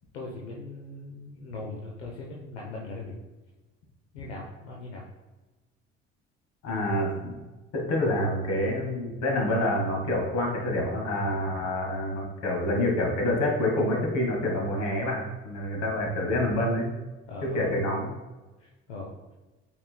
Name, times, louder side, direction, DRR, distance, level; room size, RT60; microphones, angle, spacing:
voice 1, 0.1-3.2 4.1-5.0 17.3-17.9 18.6-19.2, left 3 dB, 85° left, -3 dB, 0.9 m, -39 dB
voice 2, 6.6-7.3 7.7-16.9 17.4-18.1, left 1 dB, 55° left, 0 dB, 1.9 m, -27 dB
8.5 x 5.1 x 2.2 m, 1.2 s
hypercardioid pair, 55°, 33 cm